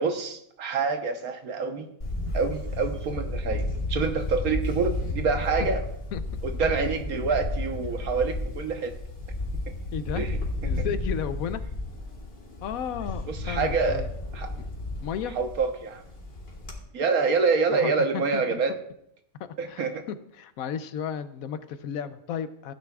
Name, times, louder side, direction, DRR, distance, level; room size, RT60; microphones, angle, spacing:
voice 1, 0.0-1.9 2.3-5.8 6.4-8.9 10.1-10.4 10.6-10.9 13.3-14.0 14.3-14.5 15.2-16.0 16.9-18.7 19.6-20.0, right 4 dB, 85° right, 6 dB, 1.5 m, -27 dB
Camera, 2.0-16.8, left 2 dB, 45° left, 1.9 m, -32 dB
voice 2, 9.9-10.3 10.6-11.6 12.6-14.1 15.0-15.3 17.7-18.6 19.7-19.8 20.4-22.7, left 8 dB, 80° left, 12 dB, 1.1 m, -33 dB
16.0 x 9.4 x 2.4 m, 0.74 s
omnidirectional pair, 1.5 m